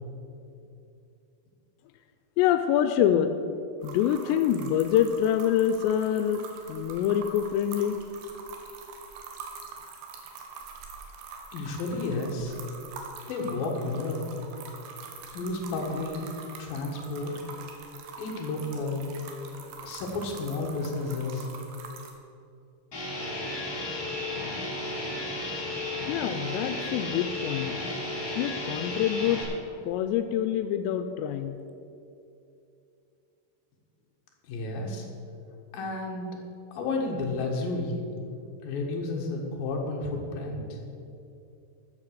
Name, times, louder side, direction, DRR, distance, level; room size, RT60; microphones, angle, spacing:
voice 1, 2.4-3.4 3.8-8.0 26.1-27.7 28.4-29.4 29.8-31.6, left 10 dB, 90° left, 8 dB, 2.8 m, -26 dB
sound 1, 3.8-22.1, right 5 dB, 75° right, 3.2 m, -44 dB
voice 2, 11.5-12.5 13.3-14.3 15.3-16.2 16.6-17.3 18.2-19.1 19.8-21.5 34.5-35.1 35.7-36.3 36.7-38.0 38.6-40.8, left 3 dB, 65° left, -1 dB, 3.3 m, -31 dB
sound 2, 22.9-29.4, left 2 dB, 30° left, 2.4 m, -33 dB
13.5 x 7.4 x 6.6 m, 2.6 s
omnidirectional pair, 5.0 m